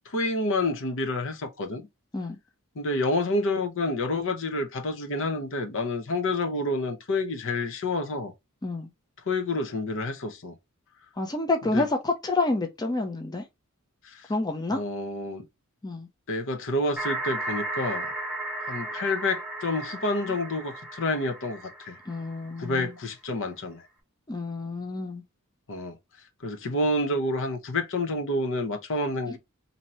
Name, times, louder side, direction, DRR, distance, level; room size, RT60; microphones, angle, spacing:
voice 1, 0.1-1.8 2.8-8.3 9.3-10.5 11.7-11.8 14.0-14.3 14.7-15.4 16.3-18.1 18.7-22.0 22.6-23.8 25.7-26.0 26.4-29.4, left 2 dB, 60° left, 0.8 m, -28 dB
voice 2, 11.2-13.4 14.3-14.8 15.8-16.1 22.1-22.9 24.3-25.2 29.3-29.4, left 2 dB, 20° left, 0.6 m, -28 dB
sound 1, 17.0-22.7, right 1 dB, 5° right, 0.9 m, -35 dB
2.9 x 2.7 x 4.2 m
head